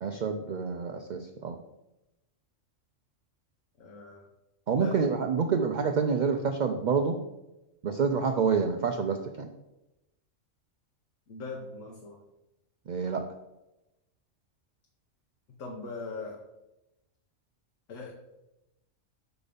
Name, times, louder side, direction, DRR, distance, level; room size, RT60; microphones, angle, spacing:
voice 1, 0.0-1.6 4.7-7.2 7.8-9.5 12.9-13.3, right 5 dB, 75° right, 5 dB, 0.4 m, -28 dB
voice 2, 3.8-4.3 4.7-5.0 11.3-12.2 15.5-16.4 17.9-18.1, left 3 dB, 75° left, 0 dB, 1.3 m, -40 dB
6.8 x 4.2 x 5.0 m, 0.95 s
omnidirectional pair, 1.4 m